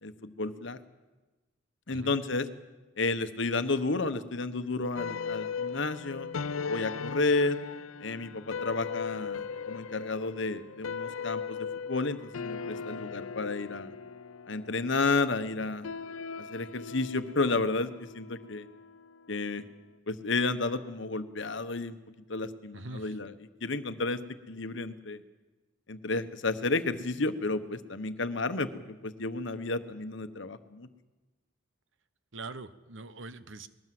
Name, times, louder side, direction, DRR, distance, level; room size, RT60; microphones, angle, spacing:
voice 1, 0.0-0.8 1.9-2.5 3.0-6.3 6.7-7.6 8.0-13.9 14.5-15.9 16.4-18.7 19.3-19.6 20.1-22.0 22.3-24.2 24.5-25.2 25.9-30.9, left 3 dB, 60° left, 10 dB, 1.1 m, -31 dB
sound 1, 5.0-19.5, left 6 dB, 75° left, 0.6 m, -38 dB
voice 2, 22.7-23.1 32.3-33.7, right 3 dB, 65° right, 13 dB, 1.0 m, -42 dB
20.5 x 18.5 x 7.8 m, 1.1 s
head